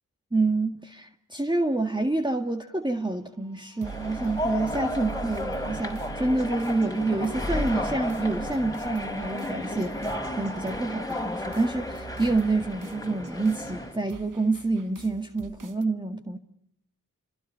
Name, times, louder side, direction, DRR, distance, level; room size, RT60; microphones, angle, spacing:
voice 1, 0.3-16.4, right 2 dB, 15° right, 1.8 m, -27 dB
sound 1, 2.9-15.8, right 5 dB, 70° right, 1.1 m, -44 dB
sound 2, 3.8-14.0, left 1 dB, 10° left, 3.9 m, -33 dB
29.0 x 26.5 x 5.6 m
wide cardioid pair, 60°, 33 cm